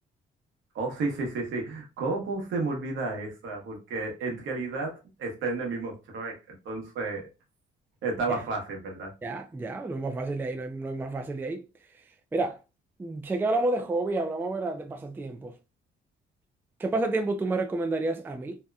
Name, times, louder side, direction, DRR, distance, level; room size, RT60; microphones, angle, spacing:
voice 1, 0.7-7.3 8.0-9.1, right 3 dB, 75° right, 1.0 m, -32 dB
voice 2, 9.2-11.6 12.3-12.6 13.0-15.6 16.8-18.6, right 2 dB, 10° right, 0.3 m, -30 dB
2.8 x 2.1 x 2.3 m
cardioid pair, 90°, 20 cm